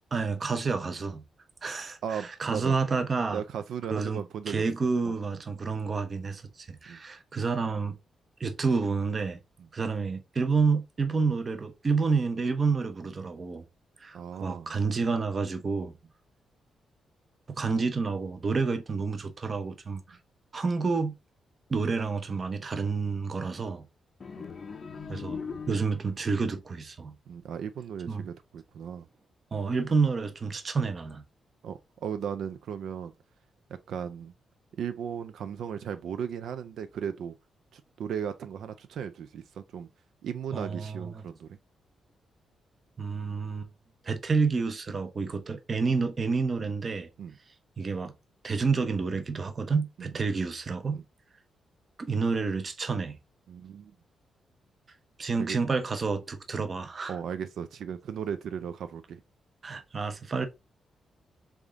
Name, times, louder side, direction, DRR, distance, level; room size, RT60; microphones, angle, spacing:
voice 1, 0.1-1.2 1.6-3.4 3.9-8.0 8.4-9.4 9.7-13.6 14.0-15.9 17.6-20.2 20.5-21.1 21.7-23.9 25.1-25.4 25.7-27.1 28.1-28.3 29.5-31.2 40.5-41.2 43.0-43.7 44.0-47.1 47.8-48.1 48.4-51.0 52.0-53.2 55.2-57.2 59.6-60.5, right 4 dB, 30° right, 0.6 m, -29 dB
voice 2, 2.0-2.8 3.3-4.6 5.0-5.1 6.9-7.0 14.1-14.7 24.4-24.5 27.3-29.1 31.6-33.1 33.9-34.3 34.8-37.4 37.7-39.9 40.2-41.6 47.2-47.3 50.0-50.1 50.9-51.0 53.5-53.9 55.4-55.6 57.1-59.2, right 8 dB, 70° right, 0.4 m, -36 dB
sound 1, 24.2-26.2, left 5 dB, 35° left, 0.6 m, -39 dB
3.6 x 3.5 x 3.7 m
wide cardioid pair, 160°, 0 cm